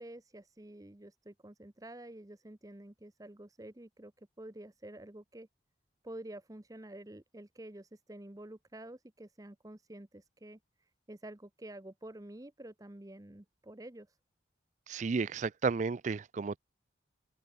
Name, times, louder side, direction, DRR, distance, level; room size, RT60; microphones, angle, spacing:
voice 1, 0.0-5.5 6.0-14.2, right 1 dB, 20° right, 0.8 m, -49 dB
voice 2, 14.9-16.6, right 4 dB, 40° right, 0.4 m, -32 dB
open air
head